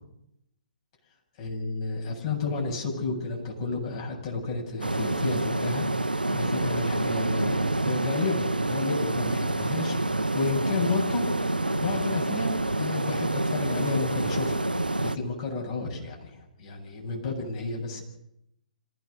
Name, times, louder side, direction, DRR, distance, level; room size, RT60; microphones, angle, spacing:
voice 1, 1.4-5.9 6.3-11.3 11.7-14.7 15.0-18.0, left 4 dB, 40° left, 0 dB, 7.9 m, -31 dB
sound 1, 4.8-15.2, right 2 dB, 85° right, 1.0 m, -27 dB
27.0 x 15.0 x 6.7 m, 0.79 s
figure-of-eight pair, 125°, 5 cm